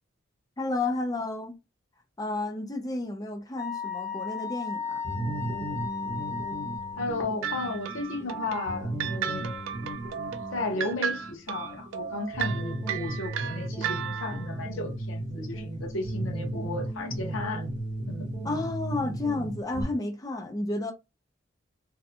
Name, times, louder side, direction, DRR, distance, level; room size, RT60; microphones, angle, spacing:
voice 1, 0.6-1.5 2.2-5.0 18.4-20.9, left 2 dB, 20° left, 0.4 m, -31 dB
Wind instrument woodwind instrument, 3.6-7.1, left 6 dB, 50° left, 1.2 m, -35 dB
sound 1, 5.0-19.8, right 1 dB, 35° right, 1.0 m, -35 dB
voice 2, 7.0-9.6 10.5-17.7 18.1-18.3, left 2 dB, 80° left, 0.7 m, -34 dB
sound 2, 7.4-14.5, right 8 dB, 75° right, 0.3 m, -34 dB
2.6 x 2.1 x 2.7 m
head